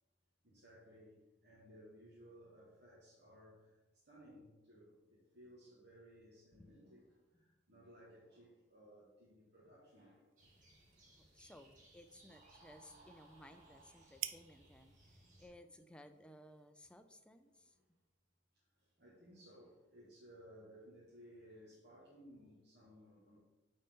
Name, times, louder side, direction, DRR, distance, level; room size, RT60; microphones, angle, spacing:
voice 1, 0.4-3.7 4.0-10.3 11.4-11.5 12.2-12.6 12.8-13.3 17.6-17.7 19.0-23.4, equal, 60° right, -7 dB, 1.7 m, -60 dB
sound 1, 9.9-17.6, right 13 dB, 90° right, 0.4 m, -54 dB
sound 2, 10.4-15.5, right 2 dB, 40° right, 1.8 m, -64 dB
voice 2, 11.1-18.0, left 1 dB, 5° left, 7 dB, 0.4 m, -60 dB
9.2 x 4.2 x 3.7 m, 1.0 s
head